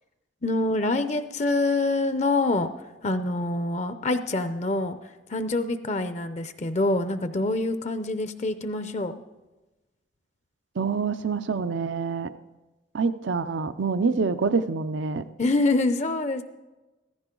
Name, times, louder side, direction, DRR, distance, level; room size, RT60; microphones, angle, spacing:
voice 1, 0.4-2.7 3.0-5.0 5.3-9.2 15.4-16.4, left 2 dB, 35° left, 11 dB, 0.6 m, -25 dB
voice 2, 10.8-12.3 12.9-15.3, right 4 dB, 80° right, 13 dB, 0.5 m, -26 dB
15.0 x 14.5 x 3.8 m, 1.1 s
head